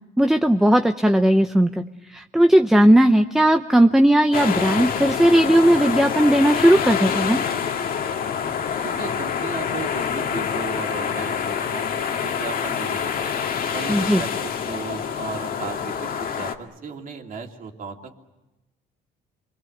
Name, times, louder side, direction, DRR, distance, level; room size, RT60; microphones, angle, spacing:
voice 1, 0.2-7.4 13.9-14.2, right 1 dB, ahead, 7 dB, 0.8 m, -17 dB
sound 1, 4.3-16.6, left 7 dB, 55° left, 1.9 m, -26 dB
voice 2, 8.8-13.4 13.7-18.2, right 5 dB, 50° right, 3 dB, 3.0 m, -36 dB
29.0 x 23.0 x 8.0 m, 1.0 s
cardioid pair, 115°, 18 cm